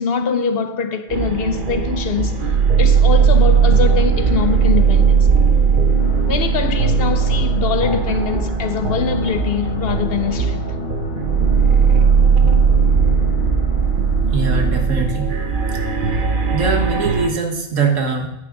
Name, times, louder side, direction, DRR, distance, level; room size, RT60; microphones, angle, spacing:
voice 1, 0.0-2.5 2.8-5.3 6.3-10.7, left 6 dB, 60° left, 0.7 m, -23 dB
sound 1, 1.1-17.3, right 6 dB, 45° right, 0.9 m, -17 dB
sound 2, 6.0-14.9, left 5 dB, 85° left, 1.2 m, -33 dB
voice 2, 14.3-15.4 16.0-16.2 16.5-18.3, right 4 dB, 80° right, 1.8 m, -21 dB
9.7 x 8.6 x 3.8 m
omnidirectional pair, 1.3 m